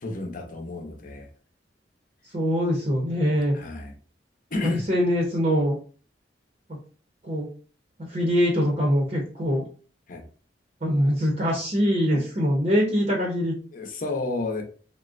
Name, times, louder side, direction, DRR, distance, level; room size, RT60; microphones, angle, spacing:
voice 1, 0.0-1.3 3.5-3.9 4.5-4.8 10.1-10.2 13.7-14.6, left 2 dB, 50° left, 2 dB, 0.6 m, -31 dB
voice 2, 2.3-3.6 4.6-5.8 7.2-7.5 8.0-9.6 10.8-13.5, equal, 40° right, -2 dB, 0.7 m, -23 dB
3.6 x 2.1 x 2.4 m, 0.41 s
head